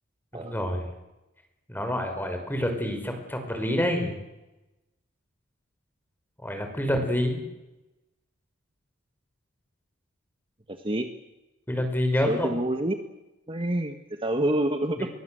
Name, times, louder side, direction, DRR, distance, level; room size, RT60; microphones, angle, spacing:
voice 1, 0.3-0.9 1.7-4.2 6.4-7.4 11.7-12.5 15.0-15.1, left 1 dB, 10° left, 5 dB, 5.9 m, -27 dB
voice 2, 10.7-11.1 12.2-13.0 13.5-15.1, right 1 dB, 25° right, 6 dB, 1.6 m, -27 dB
29.0 x 23.0 x 8.0 m, 0.98 s
head